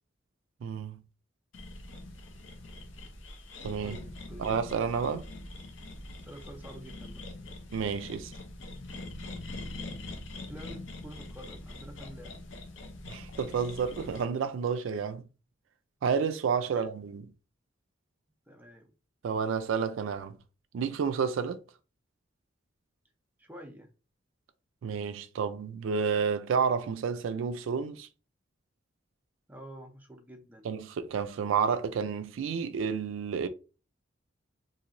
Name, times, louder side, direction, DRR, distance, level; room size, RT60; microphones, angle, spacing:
voice 1, 0.6-1.0 3.6-4.0 4.4-5.3 7.7-8.3 13.1-15.3 16.0-17.3 19.2-20.4 20.7-21.6 24.8-28.1 30.6-33.5, right 6 dB, 85° right, 0.3 m, -30 dB
sound 1, 1.5-14.2, left 2 dB, 75° left, 0.6 m, -43 dB
voice 2, 3.8-4.5 6.2-7.2 10.5-12.4 16.7-16.9 18.5-18.9 23.4-23.9 29.5-30.7, right 1 dB, 10° right, 0.5 m, -48 dB
2.9 x 2.7 x 2.5 m
head